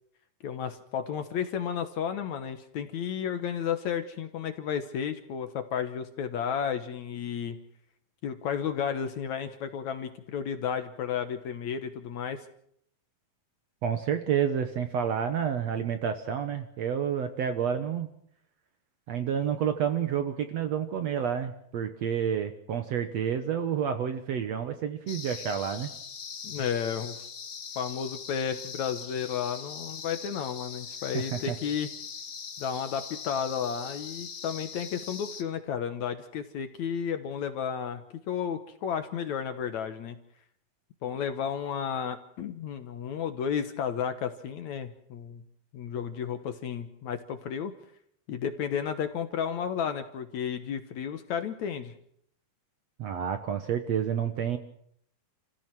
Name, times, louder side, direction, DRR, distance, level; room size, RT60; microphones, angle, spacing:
voice 1, 0.4-7.6 8.2-12.5 26.4-27.3 27.8-31.9 32.6-40.2 41.0-45.4 45.7-47.7 48.3-51.9, left 8 dB, 65° left, 9 dB, 2.2 m, -32 dB
voice 2, 13.8-18.1 19.1-25.9 31.1-31.6 53.0-54.6, right 8 dB, 60° right, 8 dB, 1.9 m, -29 dB
sound 1, 25.1-35.4, left 6 dB, 45° left, 1.5 m, -41 dB
29.0 x 15.5 x 6.2 m, 0.68 s
omnidirectional pair, 4.2 m